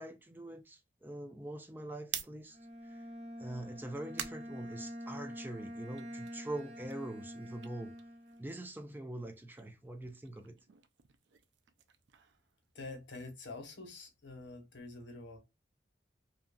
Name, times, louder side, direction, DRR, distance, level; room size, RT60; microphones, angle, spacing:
voice 1, 0.0-2.6 2.8-3.0 3.4-7.9 8.4-10.6, right 1 dB, 10° right, 0.4 m, -44 dB
sound 1, 1.9-5.4 5.8-8.8 9.1-13.2, right 10 dB, 75° right, 0.4 m, -49 dB
Bowed string instrument, 2.5-8.5, equal, 35° right, 0.9 m, -46 dB
voice 2, 12.7-15.4, left 3 dB, 85° left, 1.0 m, -47 dB
2.8 x 2.4 x 2.2 m
head